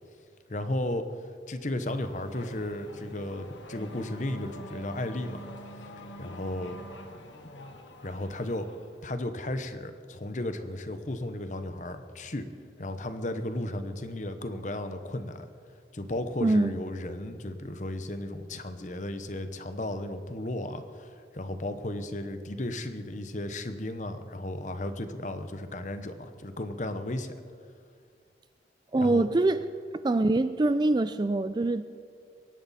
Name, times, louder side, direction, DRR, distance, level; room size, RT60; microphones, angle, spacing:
voice 1, 0.5-1.1 1.5-5.4 6.2-6.8 8.0-8.7 9.0-12.5 12.8-15.5 15.9-27.3 28.9-29.3, left 1 dB, 40° left, 9 dB, 0.9 m, -34 dB
Race car auto racing / Accelerating revving vroom, 1.8-9.0, equal, 85° left, 1.4 m, -46 dB
voice 2, 16.4-16.8 28.9-29.6 30.0-31.9, right 2 dB, 25° right, 12 dB, 0.3 m, -24 dB
23.5 x 11.0 x 4.2 m, 2.2 s
head